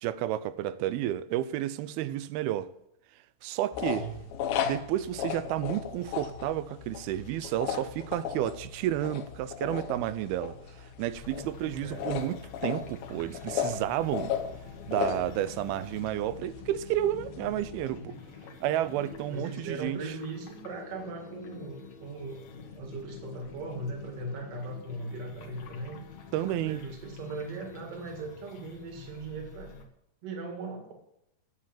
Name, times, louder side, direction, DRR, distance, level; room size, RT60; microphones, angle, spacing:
voice 1, 0.0-2.7 3.4-4.0 4.6-14.3 14.9-18.2 18.6-20.0 26.3-26.8, right 13 dB, 90° right, 2.6 m, -31 dB
sound 1, 3.7-17.9, left 8 dB, 80° left, 2.8 m, -36 dB
voice 2, 3.8-4.3 11.8-12.3 19.3-22.4 22.7-26.0 26.6-29.8 30.2-30.9, right 3 dB, 45° right, 2.8 m, -39 dB
sound 2, 11.1-29.9, left 5 dB, 60° left, 2.4 m, -47 dB
9.9 x 7.6 x 8.6 m
omnidirectional pair, 4.3 m